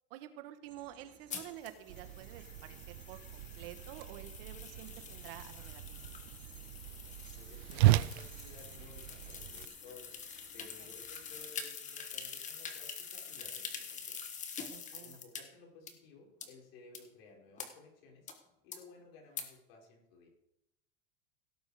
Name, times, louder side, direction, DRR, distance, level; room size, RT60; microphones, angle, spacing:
voice 1, 0.1-6.0 10.8-10.9 14.7-15.2, right 12 dB, 65° right, 9 dB, 1.6 m, -50 dB
sound 1, 0.6-11.4, right 4 dB, 45° right, 5.3 m, -63 dB
sound 2, 1.3-15.4 15.9-16.0 16.4-16.5 16.9-17.0 17.6-17.7 18.3-18.4 18.7-18.8 19.4-19.5, left 6 dB, 25° left, 1.6 m, -46 dB
Whoosh swoosh swish, 1.9-9.7, right 17 dB, 85° right, 0.6 m, -35 dB
voice 2, 7.4-10.1 10.5-14.2 14.9-18.3 18.6-20.3, left 4 dB, 70° left, 0 dB, 5.0 m, -57 dB
17.0 x 8.1 x 5.0 m, 0.85 s
supercardioid pair, 145°, 30 cm